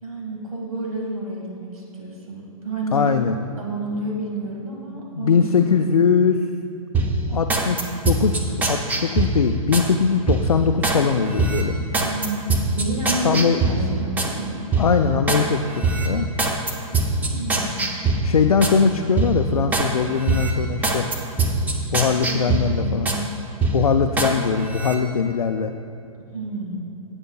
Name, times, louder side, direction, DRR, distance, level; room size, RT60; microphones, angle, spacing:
voice 1, 0.0-3.1 3.6-5.4 5.7-5.8 12.0-14.6 17.1-18.0 22.2-23.3 26.3-26.8, right 2 dB, 80° right, -2 dB, 1.8 m, -30 dB
voice 2, 2.9-3.4 5.1-6.5 7.3-11.8 13.2-13.6 14.8-16.3 18.2-21.1 21.9-23.1 23.7-25.7, left 6 dB, 90° left, 5 dB, 0.4 m, -21 dB
sound 1, 6.9-9.9 10.3-11.0 11.4-14.3 14.7-15.5 15.8-18.8 19.2-19.9 20.3-23.2 23.6-24.3 24.7-25.0, right 3 dB, 10° right, 0.6 m, -23 dB
12.5 x 8.7 x 2.3 m, 2.8 s
hypercardioid pair, 125°, 18 cm